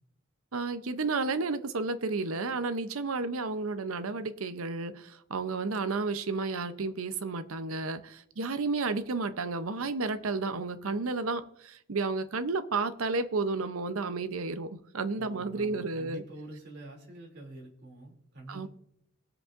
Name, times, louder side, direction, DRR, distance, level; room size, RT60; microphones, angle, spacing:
voice 1, 0.5-16.2 18.5-18.7, right 3 dB, 85° right, 12 dB, 0.7 m, -32 dB
voice 2, 15.2-18.7, right 2 dB, 55° right, -1 dB, 2.8 m, -47 dB
21.0 x 7.7 x 2.5 m, 0.73 s
head